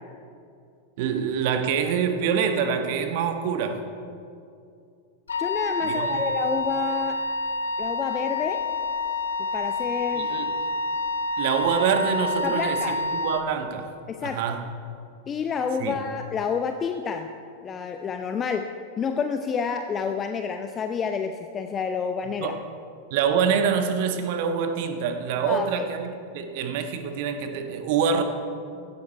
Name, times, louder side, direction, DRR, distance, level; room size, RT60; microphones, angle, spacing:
voice 1, 1.0-3.8 5.8-6.3 10.1-10.5 11.4-13.9 14.2-14.6 15.8-16.0 22.4-22.6 23.1-28.2, right 7 dB, 50° right, 7 dB, 1.3 m, -26 dB
Wind instrument woodwind instrument, 5.3-13.5, left 2 dB, 70° left, 0.7 m, -28 dB
voice 2, 5.4-7.2 7.8-8.6 9.5-10.3 12.4-13.0 14.1-14.4 15.3-17.3 17.6-18.7 19.0-22.5 25.4-25.9, left 6 dB, 25° left, 6 dB, 0.7 m, -29 dB
16.0 x 12.5 x 4.5 m, 2.4 s
figure-of-eight pair, 90°, 0 cm